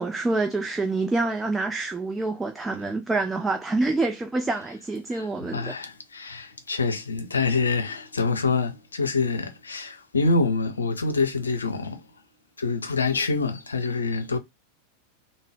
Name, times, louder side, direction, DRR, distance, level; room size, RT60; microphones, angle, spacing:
voice 1, 0.0-5.8, right 3 dB, 10° right, 0.4 m, -27 dB
voice 2, 5.1-12.0 12.6-14.4, left 4 dB, 75° left, 0.6 m, -26 dB
3.7 x 2.0 x 3.3 m
figure-of-eight pair, 90°, 0 cm